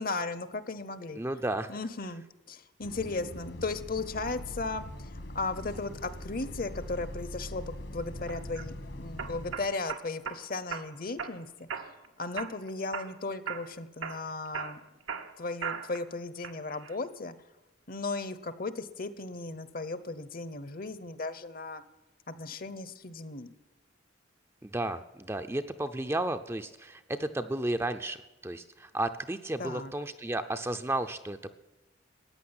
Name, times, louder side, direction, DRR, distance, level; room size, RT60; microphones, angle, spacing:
voice 1, 0.0-1.2 1.7-5.1 5.3-11.8 12.2-14.8 15.4-17.3 17.9-21.8 22.3-23.5 29.6-29.9, left 3 dB, 45° left, 14 dB, 0.9 m, -36 dB
voice 2, 1.2-1.8 24.6-31.6, right 1 dB, 15° right, 7 dB, 0.5 m, -33 dB
Bus, 2.8-9.6, left 1 dB, 65° left, 1.7 m, -42 dB
sound 1, 8.3-8.7 9.2-10.4 10.7-11.3 11.7-12.1 12.4-13.2 13.5-13.7 14.0-16.0 16.4-17.0, right 7 dB, 90° right, 1.4 m, -38 dB
14.5 x 9.5 x 9.7 m, 1.1 s
head